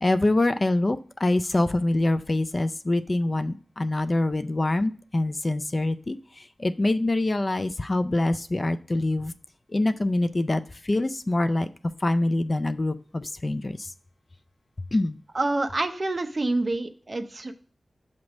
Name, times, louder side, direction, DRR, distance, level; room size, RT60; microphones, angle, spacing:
voice 1, 0.0-6.2 6.6-9.3 9.7-11.7 12.0-13.9 14.9-15.2, left 2 dB, 35° left, 0.4 m, -25 dB
voice 2, 15.3-17.5, right 2 dB, 35° right, 0.7 m, -27 dB
7.2 x 3.2 x 6.0 m
wide cardioid pair, 100°, 0 cm